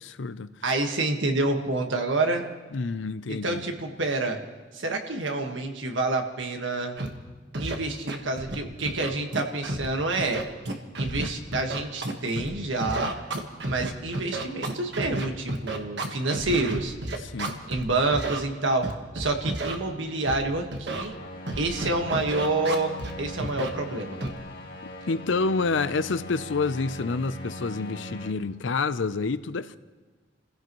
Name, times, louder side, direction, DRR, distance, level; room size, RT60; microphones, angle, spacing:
voice 1, 0.0-0.5 2.7-3.6 17.2-17.6 25.1-29.8, left 4 dB, 85° left, 0.6 m, -28 dB
voice 2, 0.6-2.4 3.3-4.4 4.7-7.0 7.6-10.4 11.0-13.2 13.7-17.0 17.7-18.9 19.1-21.1 21.6-24.2, right 2 dB, 90° right, 1.6 m, -28 dB
Scratching (performance technique), 7.0-7.1 7.5-7.7 8.1-8.5 8.9-9.9 10.1-12.5 12.8-17.8 18.1-18.4 18.8-19.7 20.3-20.4 20.7-21.1 21.5-23.1 23.4-23.7 24.2-24.4, right 2 dB, 65° right, 1.5 m, -31 dB
sound 1, 21.0-28.3, left 1 dB, 50° left, 2.1 m, -40 dB
29.0 x 16.0 x 3.1 m
head